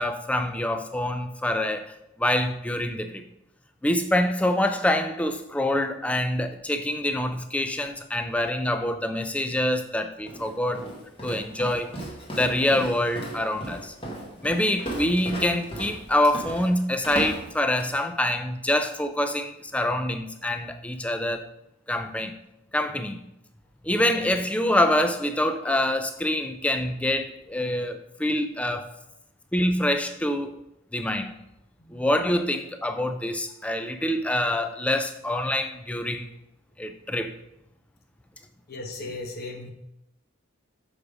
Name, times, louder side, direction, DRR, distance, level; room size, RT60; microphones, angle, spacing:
voice 1, 0.0-1.9 2.2-3.2 3.8-10.9 11.2-11.9 12.3-13.9 14.4-21.5 21.9-22.4 22.7-23.2 23.8-28.9 29.5-30.5 30.9-31.3 31.9-36.3 36.8-37.4, left 1 dB, 5° left, 8 dB, 0.4 m, -25 dB
Walk footsteps, 10.3-18.0, right 1 dB, 25° left, 1.4 m, -36 dB
voice 2, 38.7-39.7, left 2 dB, 45° left, 2 dB, 0.9 m, -37 dB
7.2 x 4.9 x 4.9 m, 0.85 s
head